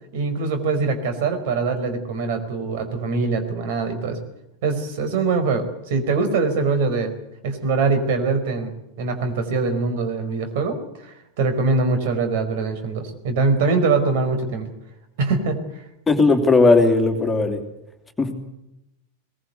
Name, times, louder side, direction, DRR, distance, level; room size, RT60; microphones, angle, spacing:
voice 1, 0.1-4.2 4.6-7.1 7.4-8.7 9.0-14.7 15.2-15.6, right 4 dB, 50° right, 8 dB, 5.0 m, -23 dB
voice 2, 16.1-17.6 18.2-18.3, left 3 dB, 10° left, 5 dB, 3.0 m, -17 dB
22.5 x 21.0 x 8.3 m, 0.84 s
figure-of-eight pair, 90°, 0 cm